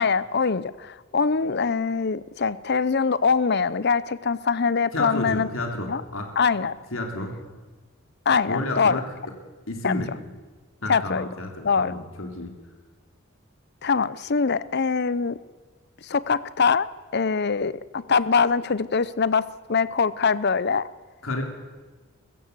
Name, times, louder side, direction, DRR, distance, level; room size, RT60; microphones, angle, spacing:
voice 1, 0.0-5.5 5.9-6.0 6.4-6.8 8.3-9.0 9.8-9.9 10.9-11.3 11.6-11.9 13.8-15.4 16.0-16.9 17.1-20.9, left 5 dB, 50° left, 17 dB, 0.7 m, -23 dB
voice 2, 4.9-6.3 6.9-7.4 8.4-9.0 9.7-10.1 10.8-12.5 21.2-21.4, left 2 dB, 75° left, 3 dB, 3.3 m, -30 dB
22.5 x 15.0 x 8.1 m, 1.3 s
head